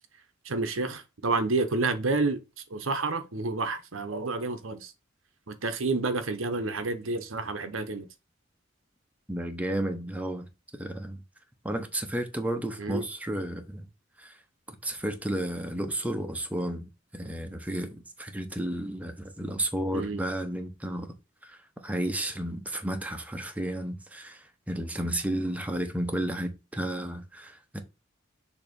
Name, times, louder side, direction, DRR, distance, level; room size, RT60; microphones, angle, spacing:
voice 1, 0.4-2.4 2.7-4.9 5.5-8.1 12.8-13.0 19.9-20.2, right 3 dB, 90° right, 0.9 m, -29 dB
voice 2, 9.3-10.5 10.7-11.2 11.6-13.9 14.2-14.4 14.7-21.1 21.4-27.8, right 1 dB, 10° right, 0.9 m, -32 dB
6.5 x 3.0 x 5.2 m
head